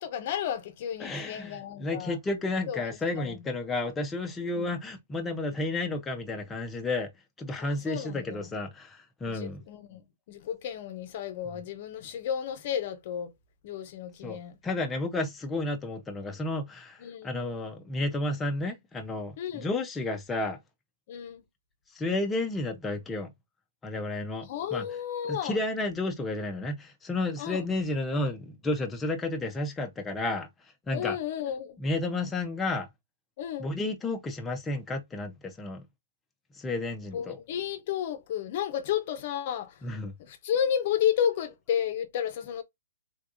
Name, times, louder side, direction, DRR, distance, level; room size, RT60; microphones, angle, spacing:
voice 1, 0.0-2.2 2.7-2.9 3.2-3.4 4.5-4.7 7.6-8.4 9.3-13.3 13.6-14.6 17.0-17.4 19.4-19.7 21.1-21.4 24.4-25.6 27.4-27.7 30.9-31.8 33.4-33.7 37.1-39.8 40.2-42.6, left 9 dB, 45° left, 0.7 m, -32 dB
voice 2, 1.0-7.1 7.4-9.6 14.2-14.4 14.6-20.6 21.9-23.3 23.8-24.8 25.3-30.5 30.9-31.2 31.8-32.9 33.6-35.8 36.6-37.4 39.8-40.1, left 2 dB, 10° left, 0.7 m, -32 dB
3.6 x 3.4 x 2.6 m
hypercardioid pair, 145°, 0 cm